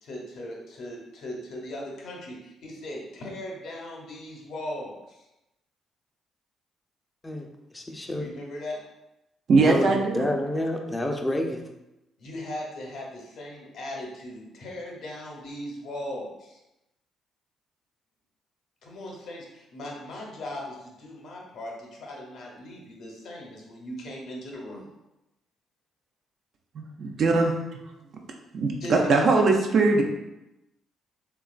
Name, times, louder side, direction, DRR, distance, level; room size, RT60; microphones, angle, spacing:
voice 1, 0.0-5.2 8.1-8.8 12.2-16.6 18.8-24.9 28.8-28.9, left 1 dB, 65° left, -2 dB, 0.7 m, -38 dB
voice 2, 7.2-8.2 9.6-11.7, left 1 dB, 15° left, 3 dB, 0.4 m, -29 dB
voice 3, 9.5-10.3 26.7-27.5 28.5-30.0, right 3 dB, 60° right, 2 dB, 0.4 m, -21 dB
2.9 x 2.3 x 2.4 m, 0.93 s
hypercardioid pair, 55°, 0 cm